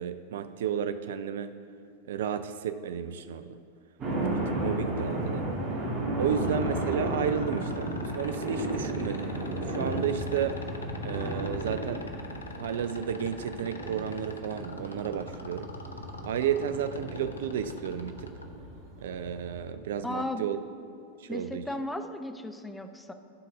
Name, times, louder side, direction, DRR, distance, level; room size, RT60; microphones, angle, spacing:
voice 1, 0.0-1.5 2.1-3.6 4.3-5.5 6.1-9.4 9.6-10.6 11.0-12.1 12.6-15.7 16.2-18.3 19.0-20.6 21.2-21.7, right 8 dB, 60° right, 11 dB, 0.3 m, -32 dB
sound 1, 4.0-19.7, right 1 dB, 30° right, 1.9 m, -34 dB
sound 2, 6.3-18.4 20.1-20.2, left 4 dB, 75° left, 0.6 m, -44 dB
voice 2, 20.0-20.4 21.3-23.1, left 1 dB, 5° left, 7 dB, 0.5 m, -35 dB
11.5 x 3.9 x 5.3 m, 2.5 s
figure-of-eight pair, 90°, 0 cm